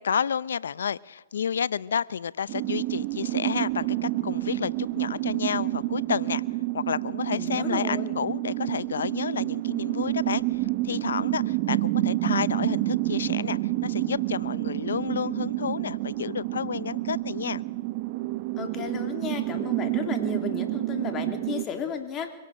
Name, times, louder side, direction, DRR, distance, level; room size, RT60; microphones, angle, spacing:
voice 1, 0.0-6.4 6.7-17.6, left 7 dB, 75° left, 20 dB, 0.7 m, -30 dB
sound 1, 2.5-21.6, right 18 dB, 45° right, 1.0 m, -29 dB
voice 2, 7.3-8.2 18.6-22.3, left 7 dB, 25° left, 5 dB, 3.1 m, -34 dB
25.0 x 17.5 x 6.6 m, 1.3 s
hypercardioid pair, 125°, 0 cm